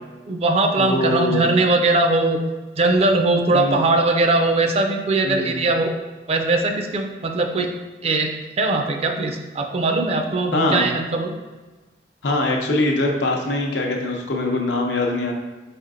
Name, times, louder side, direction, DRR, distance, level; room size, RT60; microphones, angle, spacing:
voice 1, 0.3-2.4 2.8-5.9 6.3-7.7 8.0-11.3, right 2 dB, 35° right, 4 dB, 0.4 m, -20 dB
voice 2, 0.8-1.5 3.5-3.9 5.2-5.6 10.5-10.9 12.2-15.3, left 2 dB, 85° left, 1 dB, 0.7 m, -22 dB
4.3 x 3.4 x 2.5 m, 1.2 s
head